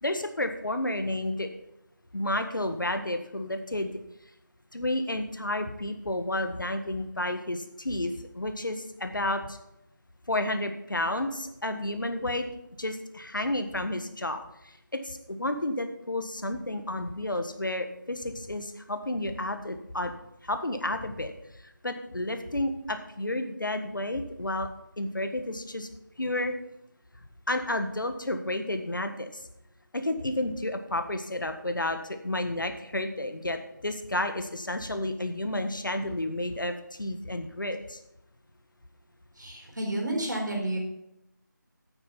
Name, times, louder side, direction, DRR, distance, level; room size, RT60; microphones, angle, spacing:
voice 1, 0.0-1.5 2.1-4.0 4.7-9.6 10.3-12.5 12.8-20.1 20.4-24.7 25.0-25.9 26.2-26.5 27.5-29.5 29.9-38.0, left 1 dB, 75° left, 8 dB, 1.5 m, -31 dB
voice 2, 39.4-40.8, right 1 dB, 65° right, 0 dB, 4.3 m, -30 dB
9.1 x 8.5 x 5.4 m, 0.83 s
figure-of-eight pair, 170°, 11 cm